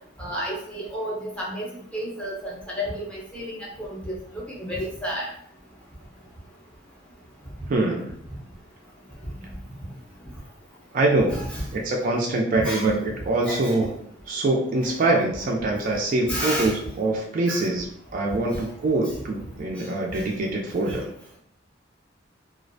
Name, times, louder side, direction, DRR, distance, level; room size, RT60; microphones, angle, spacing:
voice 1, 0.2-1.7 1.9-5.3 11.3-11.6 12.6-12.9 13.4-13.8 14.8-14.9 16.3-16.8 17.5-17.6 19.8-19.9 20.1-20.2 20.9-21.0, equal, 5° left, -5 dB, 0.6 m, -31 dB
voice 2, 7.7-8.1 10.9-11.3 11.7-13.9 14.3-17.9 18.1-21.1, right 2 dB, 45° right, -1 dB, 0.3 m, -24 dB
2.4 x 2.0 x 2.6 m, 0.67 s
head